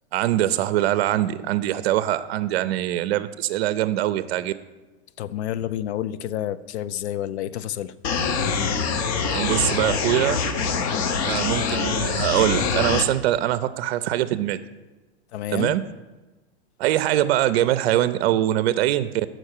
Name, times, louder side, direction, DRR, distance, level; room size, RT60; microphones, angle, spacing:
voice 1, 0.1-4.5 9.3-10.4 11.2-14.6 15.5-15.8 16.8-19.3, right 13 dB, 70° right, 13 dB, 0.5 m, -23 dB
voice 2, 5.2-7.9 15.3-15.8, left 11 dB, 85° left, 15 dB, 0.5 m, -29 dB
sound 1, 8.0-13.0, left 5 dB, 45° left, 0.8 m, -24 dB
6.2 x 4.3 x 6.5 m, 1.2 s
hypercardioid pair, 120°, 32 cm